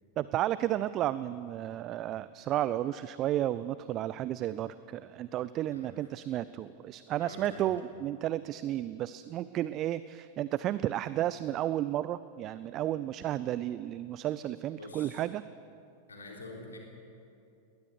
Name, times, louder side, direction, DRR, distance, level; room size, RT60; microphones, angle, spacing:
voice 1, 0.2-15.4, right 13 dB, 35° right, 16 dB, 0.4 m, -32 dB
voice 2, 7.2-7.7 14.8-15.2 16.1-16.8, left 2 dB, 75° left, 0 dB, 3.6 m, -46 dB
20.5 x 19.0 x 6.6 m, 2.5 s
figure-of-eight pair, 90°, 0 cm